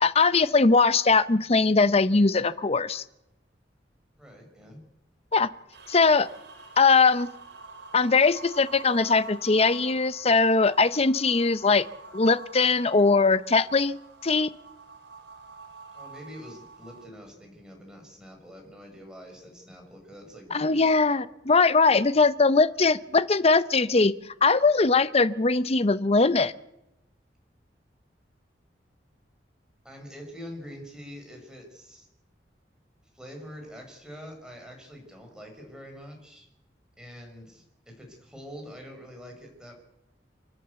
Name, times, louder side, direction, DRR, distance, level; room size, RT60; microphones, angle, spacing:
voice 1, 0.0-3.0 5.3-5.5 5.9-6.3 6.8-7.3 7.9-11.9 12.1-14.0 14.2-14.5 20.5-24.1 24.4-26.5, left 4 dB, 35° left, 15 dB, 0.8 m, -21 dB
voice 2, 4.2-4.8 15.9-21.0 29.8-32.1 33.1-36.5 37.0-39.8, equal, 5° right, 1 dB, 5.6 m, -45 dB
sound 1, 5.7-17.1, right 3 dB, 85° right, 4.5 m, -47 dB
29.5 x 11.0 x 8.1 m, 0.89 s
head